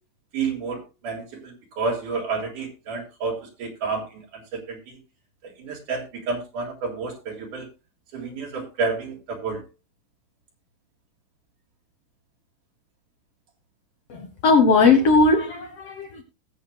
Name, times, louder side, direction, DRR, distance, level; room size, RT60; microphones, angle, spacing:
voice 1, 0.3-5.0 5.4-7.7 8.1-9.6, right 4 dB, 70° right, 0 dB, 3.4 m, -30 dB
voice 2, 14.1-16.2, left 4 dB, 65° left, 6 dB, 1.6 m, -18 dB
20.5 x 7.8 x 2.2 m, 0.25 s
omnidirectional pair, 3.9 m